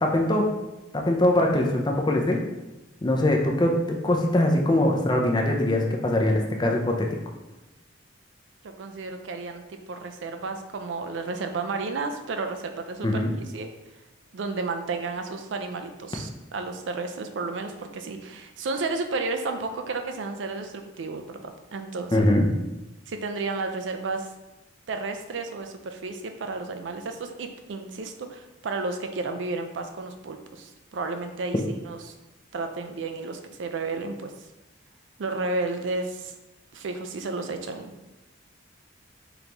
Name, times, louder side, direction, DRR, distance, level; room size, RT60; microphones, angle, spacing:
voice 1, 0.0-0.5 0.9-2.4 3.0-7.1 13.0-13.3 22.1-22.5, left 1 dB, 20° left, 1 dB, 0.5 m, -22 dB
voice 2, 8.6-13.7 14.3-22.3 23.1-24.3 24.9-32.1 32.5-34.3 35.2-36.3 36.7-37.9, right 3 dB, 70° right, 6 dB, 0.4 m, -32 dB
3.9 x 3.0 x 3.4 m, 1.0 s
head